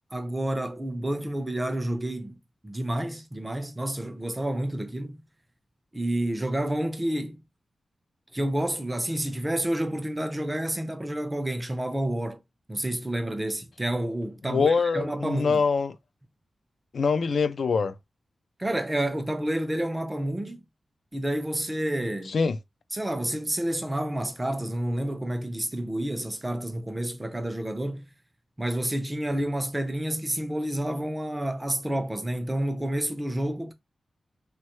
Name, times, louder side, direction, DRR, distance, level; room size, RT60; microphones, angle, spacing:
voice 1, 0.1-2.4 2.6-5.2 5.9-7.4 8.3-12.4 12.7-15.6 18.6-20.6 21.1-22.3 22.9-28.1 28.6-33.7, right 1 dB, 15° right, 0.4 m, -29 dB
voice 2, 14.5-16.0 16.9-17.9 22.3-22.6, left 5 dB, 70° left, 0.3 m, -24 dB
3.1 x 2.2 x 2.9 m
wide cardioid pair, 110°, 0 cm